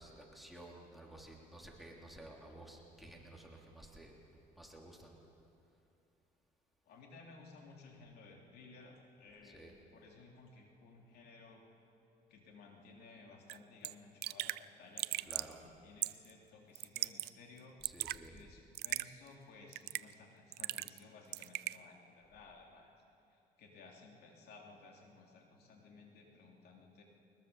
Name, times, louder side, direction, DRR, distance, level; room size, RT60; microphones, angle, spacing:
voice 1, 0.0-5.2 9.4-9.7 15.3-15.6 17.8-18.4, right 1 dB, ahead, -1 dB, 3.2 m, -53 dB
voice 2, 6.8-11.6 12.3-17.8 18.3-22.9 23.3-27.0, left 3 dB, 70° left, 1 dB, 3.3 m, -57 dB
Raindrop / Drip, 13.5-13.6 13.8-13.9 14.2-14.6 15.0-15.5 16.0-16.3 16.8-17.3 17.6-18.2 18.8-19.1 19.7-20.1 20.5-21.0 21.3-21.8, right 17 dB, 75° right, 0.5 m, -38 dB
22.0 x 20.5 x 7.2 m, 2.8 s
cardioid pair, 110°, 17 cm